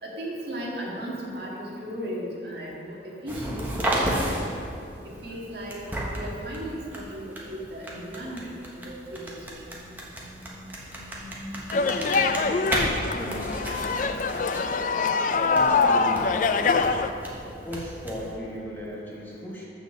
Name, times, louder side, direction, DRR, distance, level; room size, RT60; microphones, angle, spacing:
voice 1, 0.0-4.5 5.2-9.6, equal, 60° right, -3 dB, 1.8 m, -36 dB
sound 1, 3.3-18.3, right 1 dB, 10° right, 1.3 m, -34 dB
sound 2, 11.7-17.1, left 4 dB, 45° left, 0.4 m, -24 dB
voice 2, 13.1-13.6 15.5-16.9 17.4-19.6, equal, 10° left, -5 dB, 1.4 m, -36 dB
7.6 x 6.8 x 6.6 m, 2.5 s
head